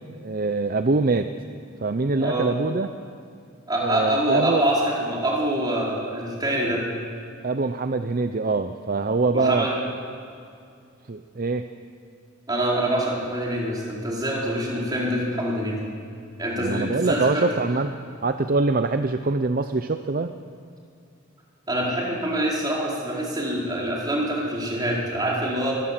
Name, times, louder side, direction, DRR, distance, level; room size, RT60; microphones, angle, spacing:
voice 1, 0.2-1.3 1.8-2.9 3.8-4.6 7.4-9.7 11.1-11.7 16.6-20.3, right 3 dB, 45° right, 9 dB, 0.6 m, -24 dB
voice 2, 3.7-6.8 9.3-9.8 12.5-15.8 16.4-17.4 21.7-25.7, right 1 dB, 20° right, -4 dB, 4.6 m, -25 dB
23.5 x 16.5 x 7.6 m, 2.4 s
head